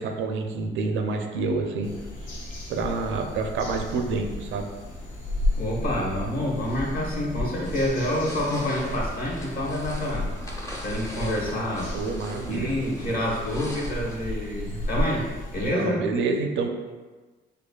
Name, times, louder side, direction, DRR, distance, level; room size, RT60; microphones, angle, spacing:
voice 1, 0.0-1.9 2.7-4.7 11.9-12.7 15.7-16.7, right 4 dB, 75° right, 4 dB, 0.5 m, -28 dB
sound 1, 1.8-15.7, left 1 dB, 70° left, 1.2 m, -33 dB
voice 2, 5.6-10.3 10.8-11.9 12.5-15.3 15.5-16.0, left 1 dB, 50° left, -3 dB, 1.2 m, -27 dB
sound 2, 7.6-14.2, equal, 15° left, 0.7 m, -42 dB
5.1 x 2.3 x 2.3 m, 1.3 s
cardioid pair, 90°, 20 cm